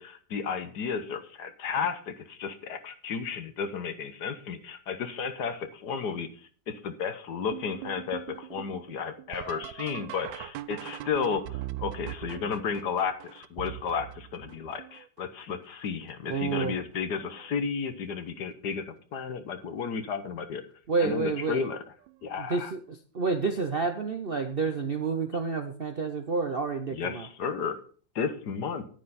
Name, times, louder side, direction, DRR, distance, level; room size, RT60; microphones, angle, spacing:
voice 1, 0.0-20.6 21.0-21.8 22.2-22.7 26.9-27.8 28.1-28.8, left 6 dB, 65° left, 9 dB, 1.5 m, -33 dB
sound 1, 7.5-15.2 15.9-16.4 16.8-17.5 18.7-18.8 19.6-19.9 22.1-22.2 24.5-24.6, right 14 dB, 80° right, 1.3 m, -41 dB
voice 2, 16.3-16.8 20.9-21.6 22.4-27.3, right 4 dB, 50° right, 6 dB, 0.7 m, -29 dB
10.0 x 9.7 x 4.1 m, 0.44 s
omnidirectional pair, 2.0 m